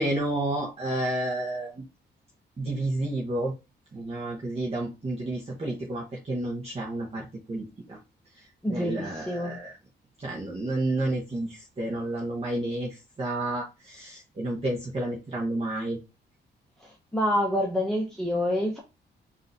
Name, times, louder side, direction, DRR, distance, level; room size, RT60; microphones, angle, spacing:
voice 1, 0.0-1.7 2.6-3.5 3.9-8.0 8.7-9.7 10.2-16.0, right 1 dB, 35° right, 1.0 m, -30 dB
voice 2, 8.6-9.5 17.1-18.8, left 1 dB, 5° left, 0.8 m, -27 dB
3.8 x 2.7 x 4.0 m
cardioid pair, 100°, 19 cm